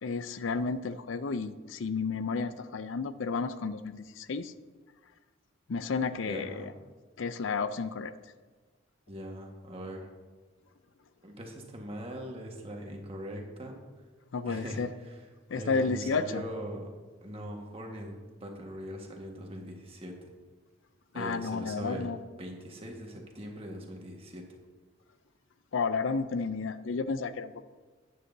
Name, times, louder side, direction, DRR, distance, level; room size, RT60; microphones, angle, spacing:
voice 1, 0.0-4.5 5.7-6.7 7.2-8.1 14.3-14.9 15.5-16.4 21.2-22.2 25.7-27.6, left 4 dB, 85° left, 13 dB, 0.5 m, -32 dB
voice 2, 6.3-6.7 9.1-10.1 11.2-13.7 14.4-15.3 15.5-16.9 17.2-18.1 18.4-20.3 21.1-22.1 22.4-24.4, equal, 30° right, 1 dB, 1.5 m, -41 dB
12.5 x 9.5 x 2.7 m, 1.4 s
head